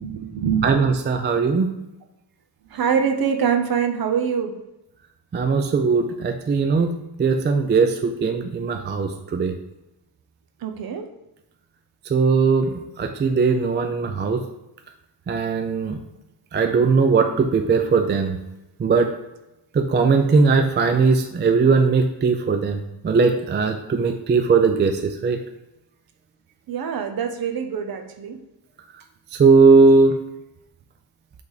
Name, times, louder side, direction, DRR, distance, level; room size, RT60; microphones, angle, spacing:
voice 1, 0.0-0.8 2.7-4.6 10.6-11.1 26.7-28.4, right 7 dB, 55° right, 6 dB, 0.8 m, -24 dB
voice 2, 0.6-1.7 5.3-6.9 7.2-9.5 12.1-14.4 15.3-16.0 16.5-18.4 18.8-19.1 19.7-22.8 23.0-25.4 29.3-30.2, right 4 dB, 25° right, 5 dB, 0.3 m, -19 dB
8.0 x 3.5 x 4.0 m, 0.93 s
wide cardioid pair, 165°, 45 cm